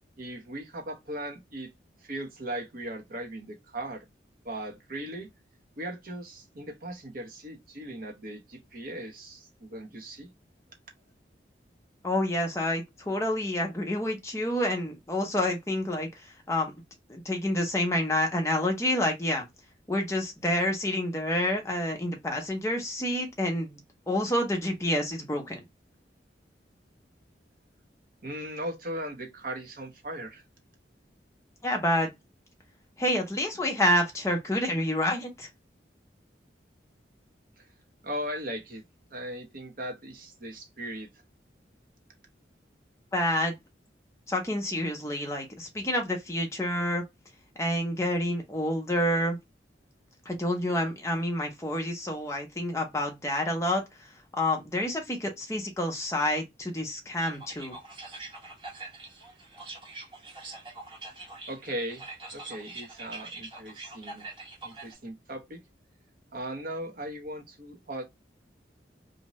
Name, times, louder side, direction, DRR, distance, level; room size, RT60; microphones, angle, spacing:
voice 1, 0.2-1.7 2.0-4.0 4.4-5.3 5.8-10.3 28.2-30.4 37.6-37.7 38.0-38.8 39.1-41.1 61.5-62.0 62.3-64.3 64.6-65.6 66.3-68.0, right 1 dB, 50° right, 0.8 m, -38 dB
voice 2, 12.0-16.1 16.5-16.7 17.1-19.4 19.9-23.8 24.1-25.6 31.6-32.1 33.0-35.5 43.1-43.5 44.3-47.0 47.6-49.4 50.3-53.8 54.4-57.7, left 1 dB, 15° left, 0.7 m, -28 dB
sound 1, 57.2-64.9, right 3 dB, 30° right, 1.0 m, -44 dB
2.6 x 2.2 x 2.9 m
head